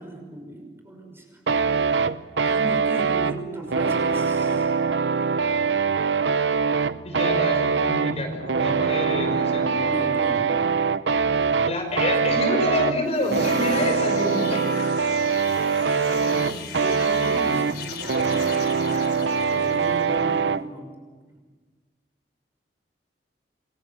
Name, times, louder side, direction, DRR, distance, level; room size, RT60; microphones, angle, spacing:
voice 1, 0.0-1.4 2.4-4.8 9.8-10.5 11.3-12.5 15.7-18.9 19.6-20.9 21.3-21.4, right 1 dB, 15° right, 2 dB, 6.0 m, -37 dB
sound 1, 1.5-20.6, right 5 dB, 90° right, 0.7 m, -23 dB
voice 2, 7.0-10.5 11.6-14.9 15.6-16.3 18.7-19.1 19.5-20.1, left 1 dB, 40° left, 3 dB, 5.6 m, -29 dB
sound 2, 12.9-20.3, left 8 dB, 65° left, 3.7 m, -40 dB
28.5 x 23.0 x 7.5 m, 1.4 s
head